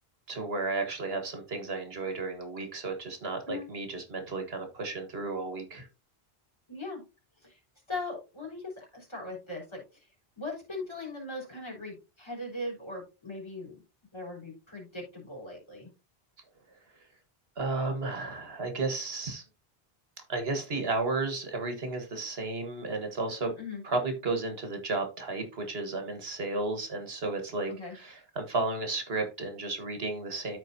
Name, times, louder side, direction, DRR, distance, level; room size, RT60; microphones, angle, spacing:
voice 1, 0.3-5.9 17.6-19.4 20.3-23.5 23.8-30.6, right 3 dB, 75° right, 5 dB, 1.7 m, -33 dB
voice 2, 6.7-7.0 7.4-7.6 7.9-10.1 10.4-13.8 14.1-15.9 23.6-23.8 27.7-28.0, left 2 dB, 25° left, -3 dB, 4.0 m, -39 dB
13.5 x 4.5 x 2.7 m, 0.29 s
omnidirectional pair, 1.0 m